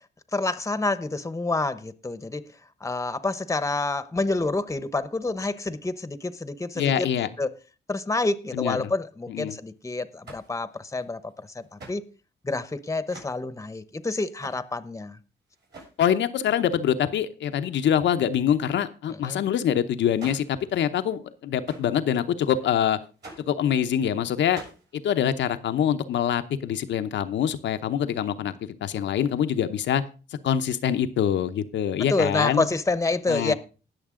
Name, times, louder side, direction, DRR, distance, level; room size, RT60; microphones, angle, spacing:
voice 1, 0.3-2.4 2.8-7.1 7.4-7.5 7.9-12.0 12.4-15.2 19.1-19.4 32.1-33.5, left 3 dB, 15° left, 0.8 m, -28 dB
voice 2, 6.8-7.3 8.5-8.9 9.3-9.6 16.0-23.0 23.4-24.6 24.9-30.0 30.4-32.7 33.3-33.5, left 9 dB, 90° left, 0.8 m, -25 dB
sound 1, 10.2-12.0 12.6-12.7 12.9-13.3 14.0-14.6 15.5-16.0 20.1-20.6 20.9-21.0 21.4-21.5 21.6-23.7 24.2-25.0, right 2 dB, 70° right, 7.2 m, -47 dB
19.5 x 6.6 x 3.7 m
cardioid pair, 75°, 18 cm